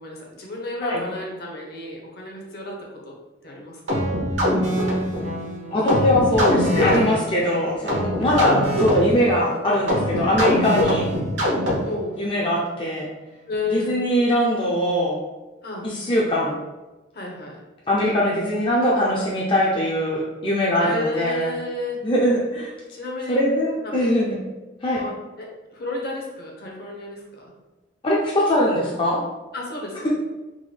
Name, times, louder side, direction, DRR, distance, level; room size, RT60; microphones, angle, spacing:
voice 1, 0.0-3.1 3.4-4.2 8.2-8.4 11.9-12.2 13.5-14.0 15.6-15.9 17.1-17.6 20.8-22.0 22.9-23.4 23.8-24.0 25.0-27.5 29.5-30.1, left 2 dB, 55° left, -1 dB, 0.8 m, -32 dB
sound 1, 3.9-12.1, equal, 80° right, 1.0 m, -23 dB
voice 2, 5.7-11.1 12.2-13.1 13.7-15.2 15.8-16.6 17.9-21.5 22.0-22.7 23.3-24.4 24.8-25.0 28.0-29.2, left 1 dB, 30° left, -5 dB, 0.4 m, -21 dB
3.7 x 2.2 x 3.2 m, 1.1 s
head